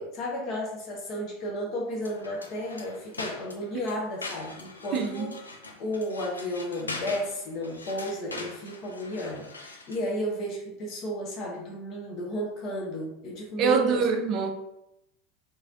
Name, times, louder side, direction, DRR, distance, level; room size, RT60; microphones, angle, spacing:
voice 1, 0.0-5.3 5.8-14.0, equal, 40° left, 0.8 m, -33 dB
sound 1, 2.0-10.1, left 2 dB, 80° left, 0.3 m, -42 dB
voice 2, 4.9-5.3 13.6-14.5, right 5 dB, 40° right, 0.3 m, -25 dB
3.1 x 2.6 x 2.4 m
figure-of-eight pair, 80°, 0 cm